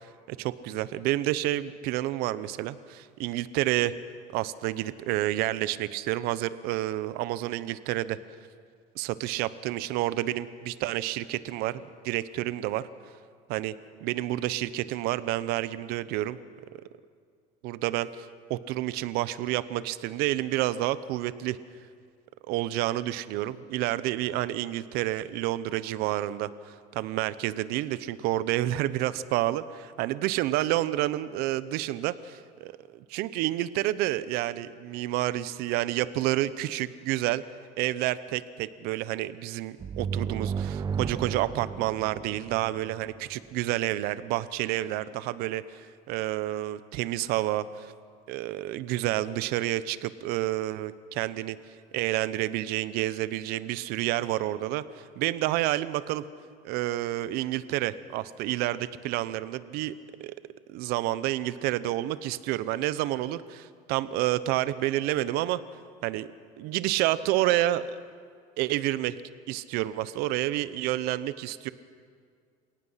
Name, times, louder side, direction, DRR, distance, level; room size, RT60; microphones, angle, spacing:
voice 1, 0.3-3.9 4.3-8.2 9.0-12.9 13.5-13.7 14.0-16.4 16.7-16.8 17.6-21.6 22.5-37.4 37.8-47.9 48.3-51.6 51.9-54.8 55.2-56.2 56.6-59.9 60.2-60.3 60.7-65.6 66.0-66.3 66.6-67.9 68.6-69.2 69.5-71.7, right 15 dB, 75° right, 15 dB, 0.9 m, -29 dB
sound 1, 39.8-43.4, right 6 dB, 25° right, 0.5 m, -34 dB
27.5 x 18.0 x 5.7 m, 2.1 s
cardioid pair, 135°, 16 cm